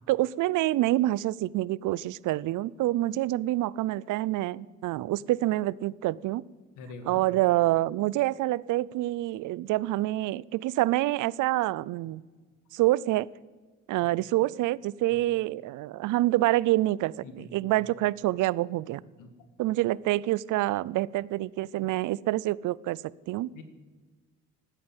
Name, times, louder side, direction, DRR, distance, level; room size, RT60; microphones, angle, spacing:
voice 1, 0.1-6.4 7.1-12.2 12.7-13.3 13.9-19.0 19.6-23.5, right 16 dB, 85° right, 22 dB, 0.5 m, -27 dB
voice 2, 6.8-7.2 17.2-17.5 17.8-17.9 19.2-19.3 23.5-23.6, left 3 dB, 90° left, 8 dB, 1.8 m, -44 dB
13.5 x 9.7 x 8.8 m, 1.4 s
cardioid pair, 90°, 30 cm